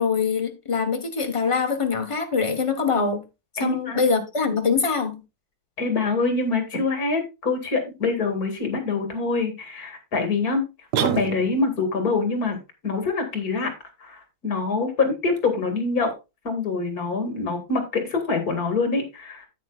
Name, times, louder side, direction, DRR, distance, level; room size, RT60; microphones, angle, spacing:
voice 1, 0.0-3.2 3.6-5.2, left 5 dB, 25° left, 0.8 m, -23 dB
voice 2, 3.6-4.0 5.8-10.6 11.0-13.7 14.0-16.1 16.4-19.5, left 3 dB, 45° left, 2.5 m, -25 dB
sound 1, 10.9-11.8, right 10 dB, 65° right, 1.2 m, -26 dB
10.0 x 8.8 x 2.4 m
omnidirectional pair, 2.3 m